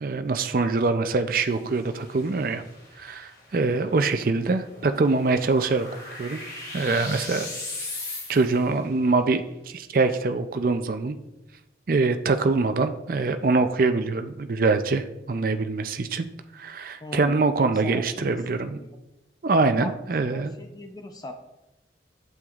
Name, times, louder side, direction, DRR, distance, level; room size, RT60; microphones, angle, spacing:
voice 1, 0.0-2.6 3.0-5.9 6.2-6.4 6.7-7.5 8.3-11.2 11.9-16.3 16.5-18.8 19.4-20.5, right 3 dB, 50° right, 8 dB, 0.4 m, -24 dB
sound 1, 1.3-8.8, left 2 dB, 60° left, 2.6 m, -40 dB
voice 2, 17.0-19.0 19.8-21.3, left 1 dB, 20° left, 5 dB, 0.5 m, -40 dB
8.9 x 7.8 x 2.4 m, 0.95 s
head